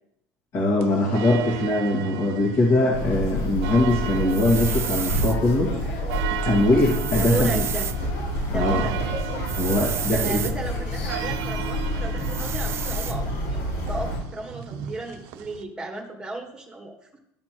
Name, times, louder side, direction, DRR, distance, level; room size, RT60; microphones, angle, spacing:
voice 1, 0.5-6.0 6.5-7.6 8.5-8.8 9.5-10.4, left 2 dB, 45° left, -4 dB, 1.8 m, -22 dB
sound 1, 0.8-15.6, right 11 dB, 70° right, 0.7 m, -36 dB
sound 2, 2.9-14.2, left 1 dB, 85° left, 2.9 m, -29 dB
sound 3, 4.3-5.4 6.8-8.0 9.5-10.5 12.2-13.2, right 10 dB, 30° right, 0.3 m, -31 dB
voice 2, 7.2-7.9 8.5-9.0 10.1-13.6 13.9-17.2, right 2 dB, 10° right, 2 dB, 1.4 m, -34 dB
13.0 x 4.3 x 3.0 m, 0.79 s
cardioid pair, 140°, 8 cm